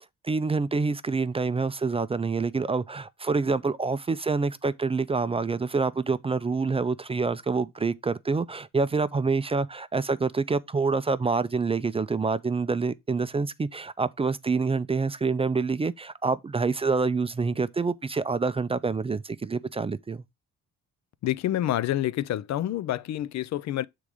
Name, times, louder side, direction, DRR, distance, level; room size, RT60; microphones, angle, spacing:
voice 1, 0.2-20.2, right 4 dB, 20° right, 0.4 m, -27 dB
voice 2, 21.2-23.8, left 13 dB, 65° left, 0.5 m, -28 dB
6.9 x 3.8 x 4.7 m
cardioid pair, 90°, 30 cm